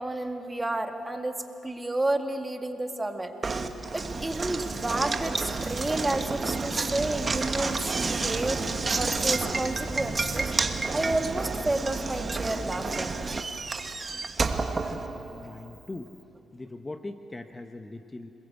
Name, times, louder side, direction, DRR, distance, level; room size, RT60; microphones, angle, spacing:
voice 1, 0.0-3.3 3.9-8.6 9.0-10.5 10.9-13.3 14.8-15.0, right 2 dB, 15° right, 4 dB, 2.1 m, -31 dB
Knock, 3.4-15.6, right 3 dB, 30° right, 1.5 m, -30 dB
voice 2, 14.7-16.1 16.5-18.3, left 2 dB, 20° left, 7 dB, 0.9 m, -41 dB
27.5 x 21.0 x 8.1 m, 2.9 s
cardioid pair, 90°, 0 cm